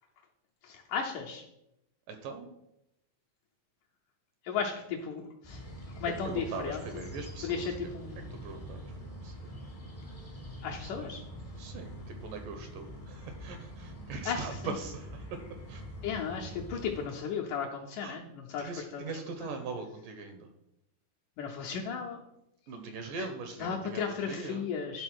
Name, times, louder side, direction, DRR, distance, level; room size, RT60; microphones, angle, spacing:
voice 1, 0.6-1.4 4.4-5.6 6.0-7.0 7.4-8.4 10.6-11.2 14.3-14.8 16.0-19.0 19.4-19.5 21.4-22.2 23.2-23.3 23.6-25.0, left 6 dB, 75° left, -1 dB, 1.9 m, -35 dB
voice 2, 2.1-2.5 6.2-7.9 8.3-9.5 10.6-11.1 11.6-15.8 16.1-16.2 18.0-18.2 18.6-20.5 22.7-24.7, right 4 dB, 75° right, 6 dB, 2.1 m, -41 dB
sound 1, 5.4-17.1, equal, 25° left, 0.7 m, -44 dB
10.5 x 3.9 x 6.2 m, 0.85 s
omnidirectional pair, 4.4 m